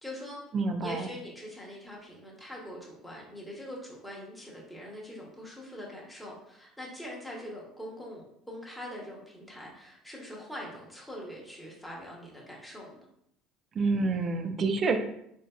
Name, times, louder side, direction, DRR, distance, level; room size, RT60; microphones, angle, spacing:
voice 1, 0.0-0.4 0.8-13.0, equal, 5° left, -3 dB, 1.1 m, -43 dB
voice 2, 0.5-1.1 13.7-15.0, right 3 dB, 40° right, 7 dB, 0.4 m, -27 dB
3.8 x 2.6 x 2.3 m, 0.75 s
supercardioid pair, 90°, 0 cm